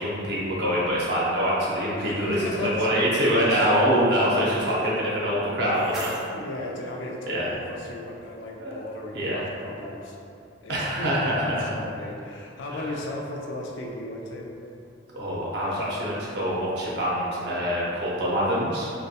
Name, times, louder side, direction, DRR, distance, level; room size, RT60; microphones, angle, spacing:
voice 1, 0.0-6.1 7.3-7.5 8.6-8.8 9.1-9.4 10.7-11.4 12.7-12.9 15.1-18.9, equal, 60° right, -6 dB, 0.5 m, -25 dB
voice 2, 2.0-2.9 6.3-10.2 10.6-14.5, left 2 dB, 75° left, -1 dB, 0.3 m, -36 dB
sound 1, 5.2-7.2, right 1 dB, ahead, 0.4 m, -39 dB
2.2 x 2.2 x 2.7 m, 2.5 s
head